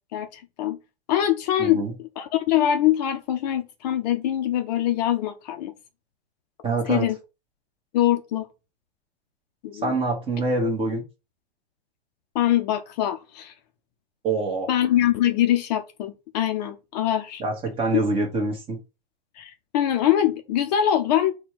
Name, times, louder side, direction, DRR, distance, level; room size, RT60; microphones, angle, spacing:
voice 1, 0.1-0.8 1.1-1.8 2.2-5.7 6.9-7.2 7.9-8.5 9.6-9.9 12.3-13.5 14.7-17.4 19.4-21.3, left 11 dB, 45° left, 0.5 m, -23 dB
voice 2, 1.6-1.9 6.6-7.1 9.8-11.0 14.2-14.7 17.4-18.8, right 2 dB, 20° right, 1.0 m, -25 dB
4.2 x 2.2 x 4.5 m
hypercardioid pair, 130°, 30 cm